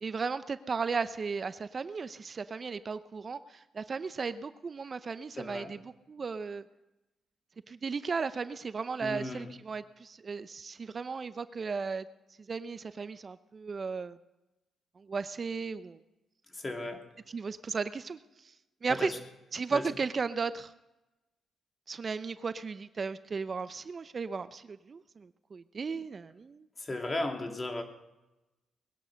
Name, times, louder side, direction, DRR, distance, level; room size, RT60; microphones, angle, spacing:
voice 1, 0.0-6.7 7.7-12.1 12.5-14.2 15.0-16.0 17.3-18.5 18.8-19.1 19.5-20.7 21.9-26.7, right 5 dB, 45° right, 14 dB, 0.7 m, -35 dB
voice 2, 5.4-5.7 9.0-9.4 16.5-17.1 18.9-19.2 19.7-19.8 26.8-27.8, left 2 dB, 30° left, 5 dB, 2.9 m, -35 dB
20.0 x 10.5 x 6.4 m, 1.0 s
cardioid pair, 70°, 0 cm